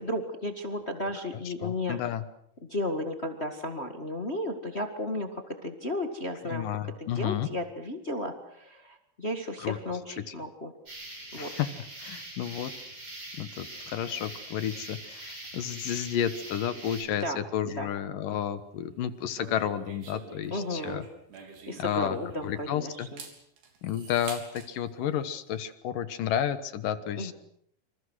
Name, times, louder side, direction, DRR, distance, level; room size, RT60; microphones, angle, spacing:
voice 1, 0.0-2.0 2.6-6.6 7.0-10.7 11.3-11.5 17.2-17.4 17.6-17.9 20.5-21.0 21.4-23.2 27.2-27.3, left 1 dB, 35° left, 5 dB, 1.0 m, -34 dB
voice 2, 1.6-2.2 6.5-7.5 9.6-9.8 10.3-10.4 11.4-11.7 12.0-12.7 13.4-21.1 21.8-22.2 22.4-23.1 23.8-27.3, left 10 dB, 65° left, 12 dB, 2.6 m, -31 dB
sound 1, 10.9-17.0, right 1 dB, 35° right, 8.8 m, -43 dB
sound 2, 19.3-22.6 23.0-24.7, right 5 dB, 85° right, 5.7 m, -46 dB
27.0 x 26.5 x 6.4 m, 0.70 s
omnidirectional pair, 4.5 m